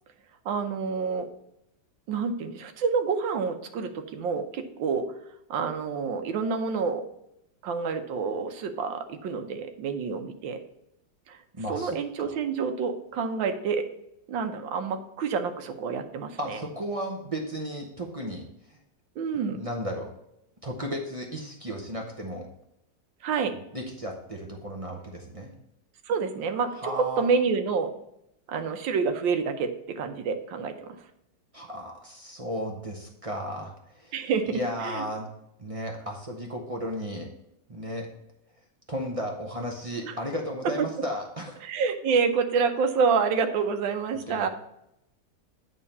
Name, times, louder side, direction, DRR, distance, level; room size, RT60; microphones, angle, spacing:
voice 1, 0.4-1.3 2.1-5.0 5.5-7.1 7.6-10.6 11.3-11.4 11.7-13.9 14.3-16.6 19.2-19.6 23.2-23.5 26.1-27.9 28.5-31.0 34.1-35.1 40.0-40.1 40.8-40.9 41.6-44.5, right 5 dB, 85° right, 7 dB, 1.5 m, -28 dB
voice 2, 11.5-12.3 16.4-18.4 18.7-18.8 19.5-20.1 20.6-22.5 23.7-25.5 26.8-27.3 31.5-34.1 34.5-35.3 35.6-37.3 37.7-38.1 38.9-41.6 44.3-44.5, equal, 45° right, 1 dB, 0.4 m, -34 dB
8.9 x 3.7 x 5.4 m, 0.82 s
omnidirectional pair, 2.0 m